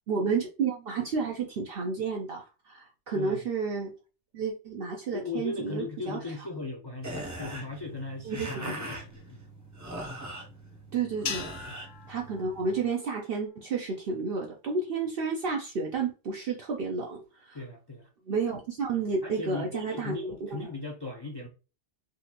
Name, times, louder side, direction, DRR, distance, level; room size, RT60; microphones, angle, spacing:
voice 1, 0.1-3.9 4.3-6.2 8.2-8.7 10.9-11.4 12.1-17.6 18.3-20.1 20.4-20.7, right 4 dB, 60° right, 0.7 m, -31 dB
voice 2, 5.1-9.4 11.7-11.8 17.5-18.1 19.2-21.5, left 3 dB, 30° left, 0.4 m, -38 dB
sound 1, 7.0-12.9, right 1 dB, 20° right, 0.6 m, -41 dB
sound 2, 11.3-13.7, left 7 dB, 65° left, 0.7 m, -40 dB
3.7 x 2.5 x 2.8 m
omnidirectional pair, 1.2 m